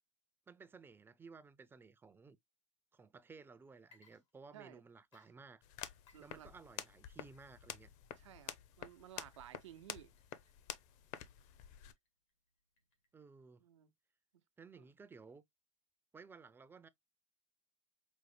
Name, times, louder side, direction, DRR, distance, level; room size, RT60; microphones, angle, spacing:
voice 1, 0.5-2.4 2.9-5.6 6.2-7.9 13.1-13.6 14.6-15.4 16.1-16.9, right 4 dB, 15° right, 0.4 m, -57 dB
Water / Liquid, 3.8-4.8 5.1-13.3, left 5 dB, 90° left, 2.3 m, -74 dB
sound 1, 5.6-11.9, left 11 dB, 55° left, 0.7 m, -50 dB
voice 2, 6.1-6.5 8.1-10.1 13.6-13.9 14.8-14.9, right 11 dB, 90° right, 0.7 m, -56 dB
5.1 x 2.1 x 3.1 m
supercardioid pair, 110°, 15 cm